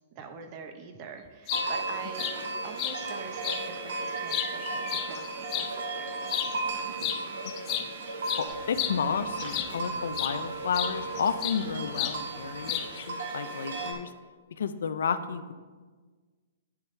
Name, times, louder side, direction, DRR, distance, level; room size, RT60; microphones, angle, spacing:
voice 1, 0.1-2.3 2.6-6.6, right 5 dB, 35° right, 6 dB, 0.8 m, -45 dB
sound 1, 1.3-1.7 2.2-2.4 2.8-3.0 3.4-3.6 4.1-5.7 6.2-6.5 7.0-7.2 7.5-9.8 10.1-10.4 10.7-11.6 12.0-12.2 12.7-13.1, left 12 dB, 30° left, 0.5 m, -32 dB
sound 2, 1.5-13.9, right 3 dB, 75° right, 1.3 m, -35 dB
voice 2, 7.4-7.9 8.4-14.1 14.6-15.5, left 6 dB, 80° left, 11 dB, 0.5 m, -32 dB
sound 3, 8.5-12.9, right 1 dB, 60° right, 2.8 m, -50 dB
9.9 x 7.0 x 3.3 m, 1.4 s
hypercardioid pair, 155°, 0 cm